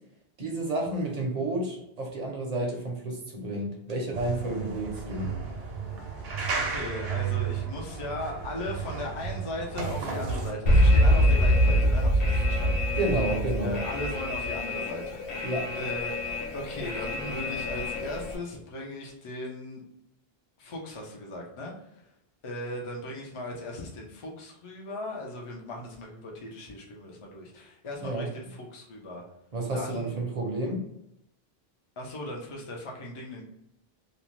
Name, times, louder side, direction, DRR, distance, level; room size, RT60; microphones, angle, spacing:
voice 1, 0.4-5.3 12.9-13.8 15.4-15.7 28.0-28.3 29.5-30.9, right 2 dB, 50° right, 0 dB, 0.6 m, -30 dB
sound 1, 4.1-10.5, right 6 dB, 75° right, 0.8 m, -33 dB
voice 2, 6.5-13.0 13.3-16.2 16.5-19.8 20.6-21.7 22.4-29.2 29.7-30.1 32.0-33.4, left 1 dB, 40° left, -1 dB, 0.5 m, -38 dB
Alarm, 10.7-18.4, equal, 70° left, 0.8 m, -25 dB
2.6 x 2.1 x 3.0 m, 0.81 s
omnidirectional pair, 1.1 m